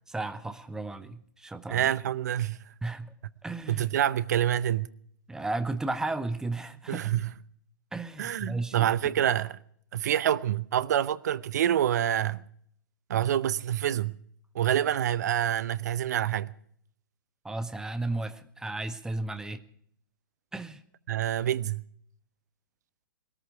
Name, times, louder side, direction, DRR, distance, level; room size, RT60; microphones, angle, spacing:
voice 1, 0.1-1.9 2.8-3.1 3.4-3.9 5.3-7.2 7.9-9.1 17.4-19.6 20.5-20.8, right 2 dB, 5° right, 0.8 m, -34 dB
voice 2, 1.7-2.6 3.7-4.9 6.9-7.3 8.2-9.6 9.9-12.4 13.1-14.2 14.5-16.5 21.1-21.8, right 11 dB, 55° right, 0.7 m, -27 dB
21.0 x 14.0 x 4.7 m
figure-of-eight pair, 115°, 11 cm